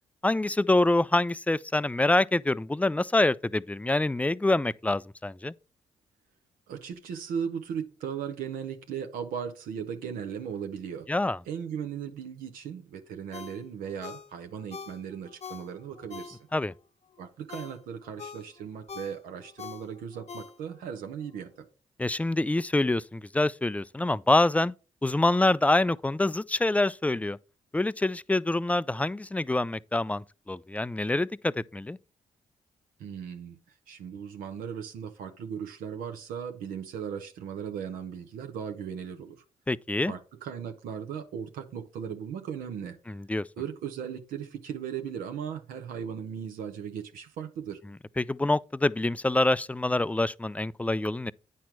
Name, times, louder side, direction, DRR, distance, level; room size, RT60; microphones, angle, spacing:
voice 1, 0.2-5.5 11.1-11.4 16.5-16.7 22.0-24.7 25.0-27.4 27.7-32.0 39.7-40.1 43.1-43.5 48.2-51.3, left 2 dB, 10° left, 0.3 m, -26 dB
voice 2, 6.7-11.1 11.5-16.5 17.2-21.6 33.0-33.6 33.9-39.3 40.1-43.0 43.6-47.8, right 7 dB, 85° right, 0.8 m, -37 dB
Ringtone, 13.3-16.8 17.2-20.9 21.3-21.4, left 5 dB, 50° left, 0.8 m, -44 dB
9.2 x 4.3 x 4.6 m
supercardioid pair, 50°, 14 cm